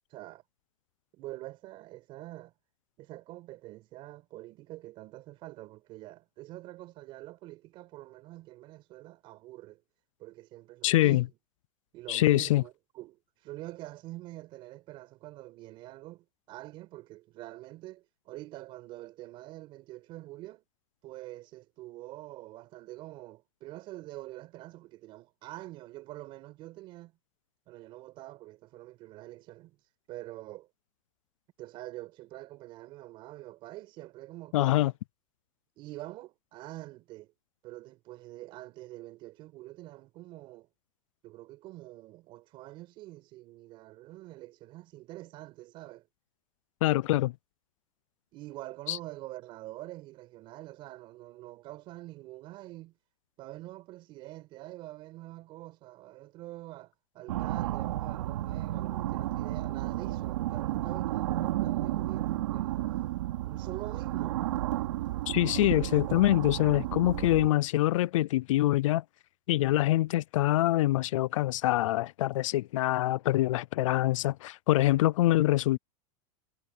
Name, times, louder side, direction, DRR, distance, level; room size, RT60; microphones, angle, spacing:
voice 1, 0.1-0.4 1.1-2.5 3.0-9.8 10.2-11.3 11.9-20.6 21.0-27.1 27.7-29.8 30.1-30.7 31.6-34.9 35.8-37.3 37.6-40.7 41.2-46.1 48.3-52.9 53.4-62.9 63.4-64.4, right 17 dB, 30° right, 5.5 m, -46 dB
voice 2, 10.8-11.2 12.1-12.6 34.5-34.9 46.8-47.3 48.9-49.0 65.3-69.0 69.5-75.8, left 15 dB, 70° left, 0.4 m, -25 dB
sound 1, 57.3-67.5, right 14 dB, 70° right, 3.4 m, -32 dB
supercardioid pair, 175°, 17 cm